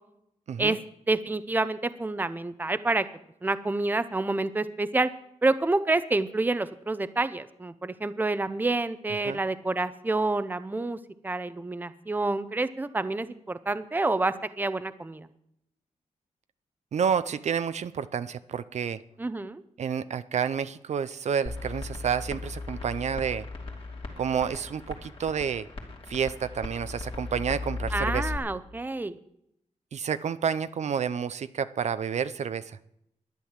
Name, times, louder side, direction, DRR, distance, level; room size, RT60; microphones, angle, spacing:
voice 1, 1.1-3.1 3.4-5.1 5.4-11.0 11.2-15.3 19.2-19.6 27.9-29.2, right 2 dB, 15° right, 12 dB, 0.7 m, -28 dB
voice 2, 16.9-19.0 19.8-23.5 24.2-25.7 26.1-28.3 29.9-32.6, right 7 dB, 60° right, 13 dB, 0.6 m, -29 dB
sound 1, 21.5-28.4, left 3 dB, 45° left, 2.7 m, -37 dB
11.5 x 10.5 x 7.3 m, 0.77 s
wide cardioid pair, 120°, 13 cm